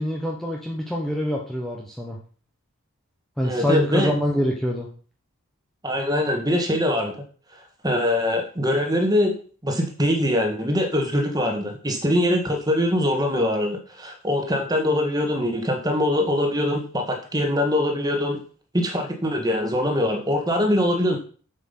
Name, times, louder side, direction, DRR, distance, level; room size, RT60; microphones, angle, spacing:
voice 1, 0.0-2.2 3.4-4.9, equal, ahead, -2 dB, 1.2 m, -25 dB
voice 2, 3.4-4.1 5.8-7.2 7.5-9.4 9.6-18.4 18.7-21.2, left 1 dB, 20° right, 3 dB, 1.8 m, -23 dB
7.7 x 7.4 x 5.7 m, 0.41 s
head